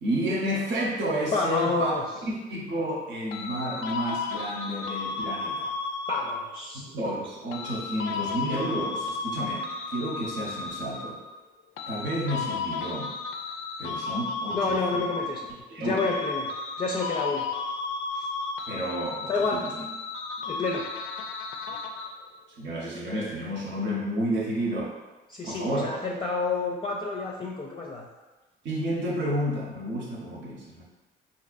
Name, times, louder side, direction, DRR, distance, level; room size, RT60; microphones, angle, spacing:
voice 1, 0.0-1.9 2.3-5.7 6.7-11.2 11.9-13.1 13.8-15.1 15.7-16.0 18.7-19.9 22.6-24.9 25.4-25.9 28.6-30.8, right 1 dB, 70° right, -2 dB, 0.9 m, -31 dB
voice 2, 1.3-2.0 6.1-6.9 14.5-15.4 15.8-16.5 16.8-17.4 18.2-18.3 19.3-19.6 20.4-20.8 25.3-28.1, left 3 dB, 25° left, -2 dB, 0.4 m, -29 dB
sound 1, 3.3-6.7 7.5-11.3 11.8-15.7 16.0-22.3, left 4 dB, 85° left, 0.4 m, -34 dB
4.1 x 2.8 x 2.5 m, 1.2 s
cardioid pair, 90°, 20 cm